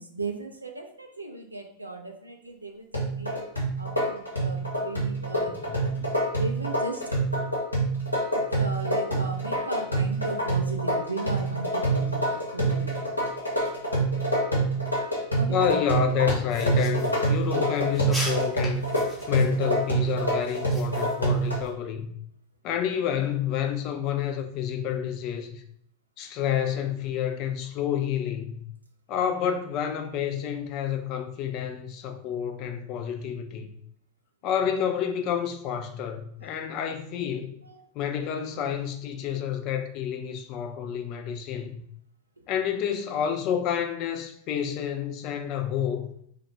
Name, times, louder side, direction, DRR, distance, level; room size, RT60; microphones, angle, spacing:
voice 1, 0.0-3.4 3.8-5.6 6.3-7.0 8.3-13.2 15.3-15.8 36.4-36.6 37.6-37.7 39.3-39.4, right 3 dB, 85° right, 4 dB, 0.3 m, -37 dB
sound 1, 2.9-21.6, right 2 dB, 85° left, 0.8 m, -26 dB
voice 2, 5.6-6.1 15.5-22.1 22.6-25.6 26.2-28.6 29.1-33.7 34.4-37.6 37.9-41.8 42.5-46.1, left 9 dB, 40° left, 5 dB, 0.3 m, -29 dB
sound 2, 16.5-21.7, left 1 dB, ahead, 0.7 m, -40 dB
2.3 x 2.1 x 3.0 m, 0.66 s
figure-of-eight pair, 90°, 0 cm